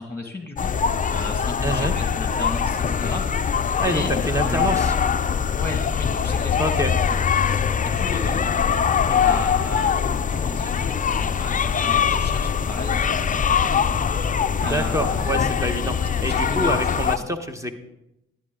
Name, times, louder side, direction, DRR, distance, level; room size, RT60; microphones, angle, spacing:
voice 1, 0.0-3.5 3.8-4.8 5.5-7.5 8.0-8.4 9.1-13.7 14.6-15.5 16.0-16.9 17.2-17.3, left 2 dB, 10° left, 4 dB, 2.0 m, -35 dB
sound 1, 0.6-17.2, left 7 dB, 25° left, 0.5 m, -22 dB
voice 2, 1.6-1.9 3.8-4.9 6.6-6.9 14.6-17.8, equal, 10° right, 7 dB, 1.2 m, -26 dB
12.0 x 9.9 x 3.8 m, 0.91 s
supercardioid pair, 65°, 30 cm